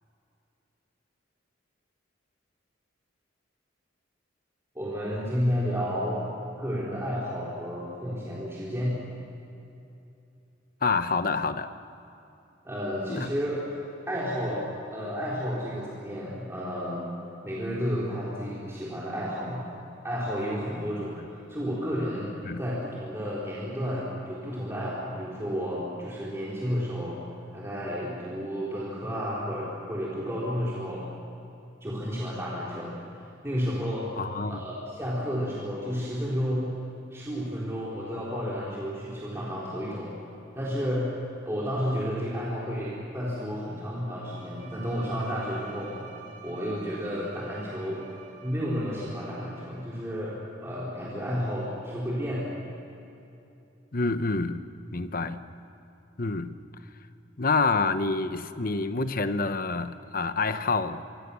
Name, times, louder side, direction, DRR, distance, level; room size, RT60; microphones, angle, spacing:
voice 1, 4.7-6.3 6.6-9.0 12.6-13.6 14.1-17.1 17.4-19.6 20.0-27.2 27.5-31.1 31.8-32.9 33.4-34.1 34.5-36.7 37.1-40.1 40.5-41.1 41.4-46.0 46.4-48.1 48.4-52.5, equal, 15° right, -7 dB, 3.9 m, -31 dB
voice 2, 10.8-11.7 13.1-13.3 22.4-22.6 34.2-34.6 53.9-54.6 54.9-55.4 56.2-56.5 57.4-61.0, left 3 dB, 45° left, 10 dB, 1.0 m, -27 dB
Bowed string instrument, 44.2-50.0, right 6 dB, 45° right, 2.8 m, -49 dB
27.0 x 24.5 x 7.1 m, 2.7 s
head